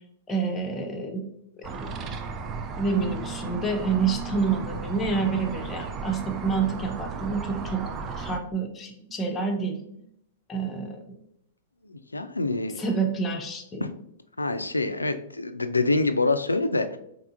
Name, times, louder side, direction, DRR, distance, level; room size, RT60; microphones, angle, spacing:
voice 1, 0.3-1.2 1.6-2.1 2.8-7.8 8.2-10.0 10.5-11.2 12.8-13.9, right 4 dB, 20° left, 2 dB, 0.6 m, -28 dB
sound 1, 1.6-8.4, right 4 dB, 30° right, 0.4 m, -35 dB
voice 2, 11.8-12.8 13.8-13.9 14.4-17.0, left 2 dB, 85° left, 10 dB, 0.3 m, -26 dB
3.6 x 3.5 x 2.4 m, 0.73 s
figure-of-eight pair, 105°, 0 cm